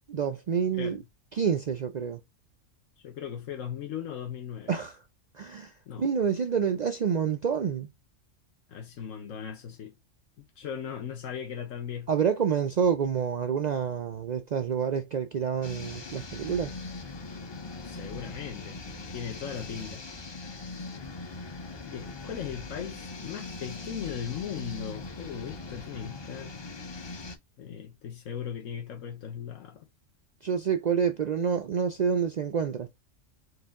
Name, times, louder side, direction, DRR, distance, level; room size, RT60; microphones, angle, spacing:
voice 1, 0.1-1.0 1.4-2.2 4.7-5.0 5.4-5.7 6.0-7.9 12.1-16.7 30.4-32.9, right 7 dB, 75° right, 0.4 m, -28 dB
voice 2, 3.0-4.7 5.9-6.1 8.7-9.9 10.4-12.1 17.8-18.8 19.1-20.0 21.8-26.6 27.6-29.9, left 8 dB, 85° left, 1.3 m, -38 dB
sound 1, 15.6-27.4, left 3 dB, 35° left, 0.4 m, -40 dB
4.8 x 2.7 x 3.6 m
omnidirectional pair, 1.3 m